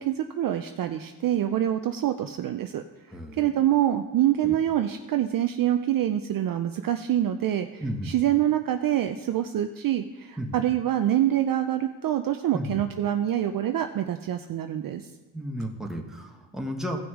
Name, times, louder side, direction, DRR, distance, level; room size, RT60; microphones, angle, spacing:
voice 1, 0.0-2.8 3.4-15.1, right 11 dB, 50° right, 7 dB, 0.5 m, -26 dB
voice 2, 3.1-3.5 4.4-4.5 7.8-8.1 10.4-10.6 12.5-12.8 15.3-17.0, equal, ahead, 0 dB, 1.2 m, -33 dB
16.5 x 6.0 x 3.6 m, 1.1 s
cardioid pair, 115°, 45 cm